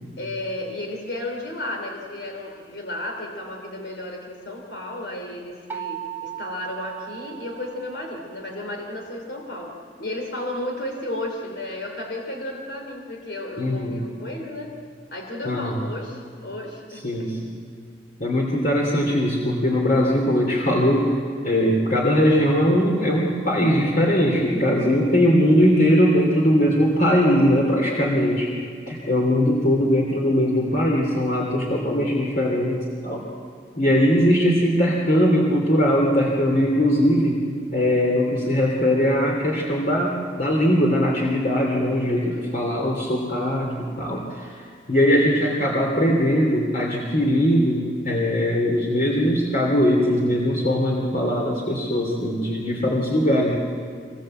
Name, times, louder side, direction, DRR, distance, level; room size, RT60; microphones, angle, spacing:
voice 1, 0.2-14.7 15.1-17.0 42.0-42.5, left 1 dB, 80° left, 1 dB, 3.2 m, -33 dB
sound 1, 5.7-8.5, right 11 dB, 10° right, 1.1 m, -36 dB
voice 2, 13.6-14.0 15.4-15.8 17.0-17.5 18.2-21.2 21.4-28.5 28.9-33.2 33.8-37.4 37.7-44.6 44.9-53.6, equal, 50° left, -2 dB, 3.0 m, -20 dB
25.0 x 21.0 x 7.8 m, 2.4 s
head